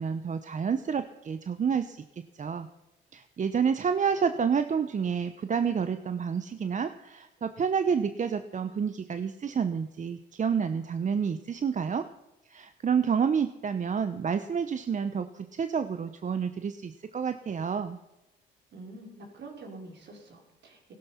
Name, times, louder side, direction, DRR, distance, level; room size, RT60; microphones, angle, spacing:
voice 1, 0.0-2.0 2.4-2.7 3.1-12.0 12.5-18.0, right 6 dB, 40° right, 10 dB, 0.8 m, -29 dB
voice 2, 18.7-20.9, right 2 dB, 60° right, 1 dB, 4.6 m, -46 dB
16.5 x 12.0 x 5.7 m, 0.94 s
cardioid pair, 90°, 20 cm